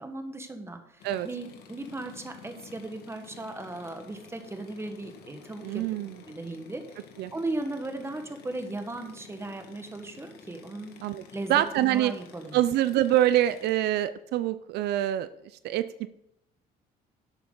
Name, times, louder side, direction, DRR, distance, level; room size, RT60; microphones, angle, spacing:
voice 1, 0.0-5.8 6.3-7.0 7.3-10.9 11.3-12.6, right 2 dB, 15° right, 6 dB, 1.4 m, -37 dB
sound 1, 1.0-13.7, left 6 dB, 70° left, 1.7 m, -51 dB
voice 2, 5.6-6.1 7.2-7.3 11.0-11.2 11.5-12.1 12.5-15.3 15.6-16.1, right 13 dB, 75° right, 13 dB, 0.5 m, -25 dB
11.5 x 8.1 x 3.9 m, 0.78 s
cardioid pair, 110°, 17 cm